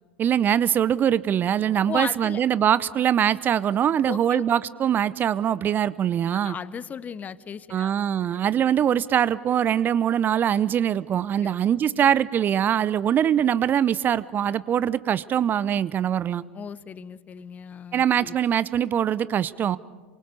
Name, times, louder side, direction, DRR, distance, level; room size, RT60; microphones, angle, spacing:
voice 1, 0.2-6.6 7.7-16.4 17.9-19.8, right 9 dB, 30° right, 19 dB, 0.7 m, -23 dB
voice 2, 1.9-2.4 4.1-4.4 6.4-8.1 11.4-11.5 16.5-18.4, left 7 dB, 25° left, 19 dB, 0.8 m, -36 dB
27.5 x 24.0 x 6.9 m, 1.4 s
figure-of-eight pair, 80°, 6 cm